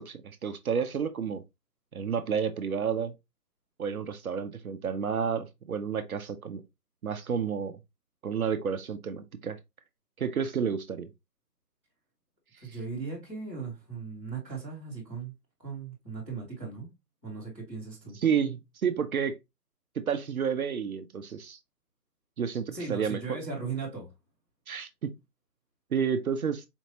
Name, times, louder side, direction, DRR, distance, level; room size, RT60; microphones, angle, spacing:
voice 1, 0.0-1.4 1.9-3.1 3.8-6.6 7.0-7.8 8.2-9.6 10.2-11.1 18.2-19.4 20.1-21.6 22.4-22.6 22.9-23.2 24.7-25.1 25.9-26.7, right 7 dB, 60° right, 0.6 m, -30 dB
voice 2, 12.6-15.3 15.6-16.9 17.2-18.2 22.7-24.1, right 4 dB, 10° left, 1.0 m, -37 dB
4.4 x 2.8 x 2.8 m
hypercardioid pair, 165°, 48 cm